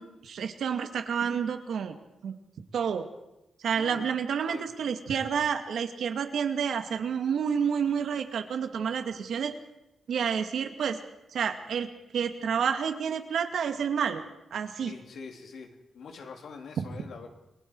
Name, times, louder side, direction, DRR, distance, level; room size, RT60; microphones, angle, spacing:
voice 1, 0.0-1.9 2.2-2.3 2.7-3.1 3.6-9.5 10.1-11.0 11.3-14.2 14.5-14.9 16.8-16.9, right 7 dB, 75° right, 6 dB, 2.3 m, -29 dB
voice 2, 3.7-4.1 4.5-4.7 14.8-17.3, left 5 dB, 70° left, 3 dB, 3.4 m, -44 dB
29.5 x 22.0 x 4.8 m, 0.93 s
wide cardioid pair, 165°, 0 cm